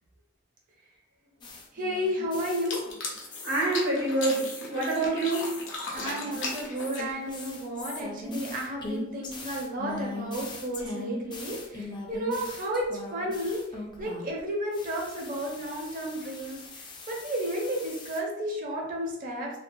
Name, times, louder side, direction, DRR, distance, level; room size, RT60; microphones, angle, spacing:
sound 1, 1.4-3.0 3.3-3.9 4.3-14.4 14.7-18.2, left 2 dB, 25° left, 0.3 m, -40 dB
voice 1, 1.7-2.8 5.9-19.5, equal, 45° right, -1 dB, 0.5 m, -32 dB
sound 2, 2.5-7.4, left 3 dB, 75° left, 0.6 m, -37 dB
voice 2, 3.4-5.6 7.9-8.0, right 2 dB, 85° right, -5 dB, 1.0 m, -27 dB
2.6 x 2.2 x 2.6 m, 0.84 s
head